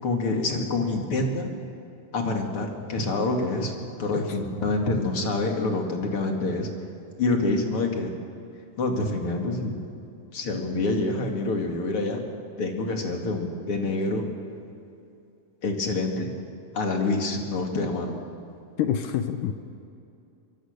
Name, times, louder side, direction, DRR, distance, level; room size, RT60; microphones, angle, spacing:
voice 1, 0.0-1.5 2.1-3.7 4.0-6.7 7.2-8.1 8.8-9.7 10.3-12.2 12.6-14.3 15.6-16.3 16.7-18.2, left 2 dB, 40° left, 2 dB, 2.8 m, -26 dB
voice 2, 18.8-19.5, left 9 dB, 70° left, 7 dB, 2.2 m, -26 dB
24.0 x 22.5 x 6.7 m, 2.7 s
omnidirectional pair, 4.3 m